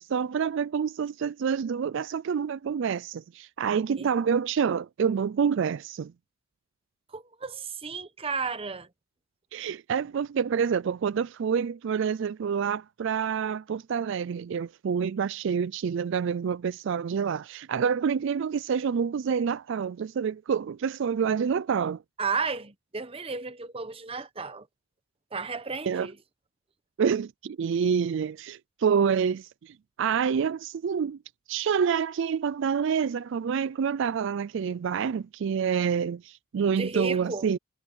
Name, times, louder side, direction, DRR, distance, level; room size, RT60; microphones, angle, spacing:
voice 1, 0.0-6.1 9.5-22.0 25.8-26.1 27.0-31.2 31.5-37.6, right 6 dB, 60° right, 0.4 m, -27 dB
voice 2, 7.1-8.9 22.2-24.6 25.3-26.2 36.8-37.5, right 4 dB, 30° right, 0.9 m, -33 dB
head